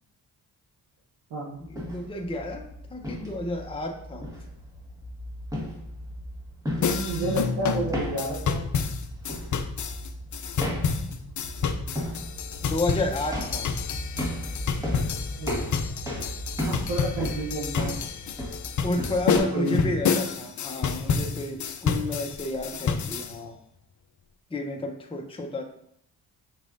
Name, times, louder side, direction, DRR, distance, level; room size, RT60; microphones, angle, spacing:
voice 1, 1.6-4.2 11.0-11.4 12.6-13.7 18.8-23.6 24.5-25.6, left 1 dB, 10° left, 2 dB, 0.8 m, -31 dB
sound 1, 1.6-19.4, equal, 5° right, 1.7 m, -35 dB
voice 2, 6.7-8.6 15.4-15.6 16.6-18.0 19.5-19.9, right 2 dB, 80° right, -4 dB, 1.1 m, -30 dB
sound 2, 6.8-23.3, left 6 dB, 40° left, 0.5 m, -29 dB
6.4 x 3.1 x 2.6 m, 0.73 s
hypercardioid pair, 45°, 47 cm